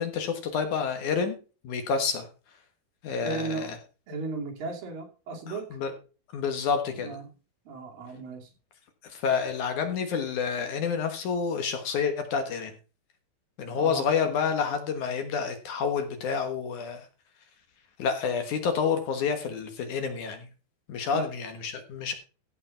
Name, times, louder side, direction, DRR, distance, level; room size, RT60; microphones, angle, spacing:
voice 1, 0.0-1.3 1.6-2.3 3.0-3.8 5.5-5.9 6.3-7.2 9.0-12.7 13.6-17.0 18.0-20.5 20.9-22.1, left 6 dB, 60° left, 7 dB, 2.5 m, -29 dB
voice 2, 3.2-3.7 4.1-5.8 6.9-7.3 7.7-8.5 13.8-14.1 21.1-21.3, right 3 dB, 65° right, 1 dB, 4.2 m, -35 dB
14.5 x 5.4 x 5.7 m, 0.35 s
omnidirectional pair, 4.3 m